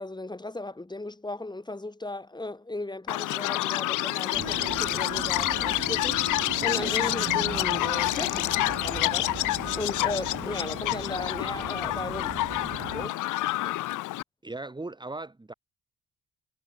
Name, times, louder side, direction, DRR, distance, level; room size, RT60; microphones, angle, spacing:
voice 1, 0.0-9.3 9.8-12.4 12.9-13.2 13.6-13.8, left 2 dB, 15° left, 5.6 m, -36 dB
Chirp tweet, 3.1-14.2, left 16 dB, 85° left, 1.1 m, -28 dB
sound 1, 4.3-13.1, right 7 dB, 40° right, 1.8 m, -39 dB
voice 2, 14.4-15.5, right 2 dB, 15° right, 2.3 m, -37 dB
cardioid pair, 90°, 30 cm